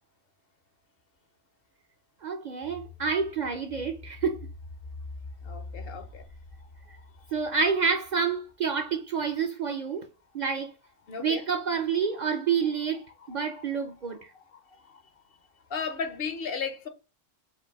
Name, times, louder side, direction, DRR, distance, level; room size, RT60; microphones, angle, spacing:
voice 1, 2.2-4.5 7.3-10.1 10.3-10.8 11.2-14.3, right 6 dB, 55° right, 0.5 m, -28 dB
sound 1, 2.6-8.2 8.7-8.8, left 3 dB, 90° left, 1.3 m, -44 dB
voice 2, 5.4-6.2 11.1-11.4 13.3-13.6 14.4-15.0 15.7-16.9, left 6 dB, 60° left, 0.9 m, -35 dB
4.5 x 2.6 x 4.0 m
omnidirectional pair, 1.1 m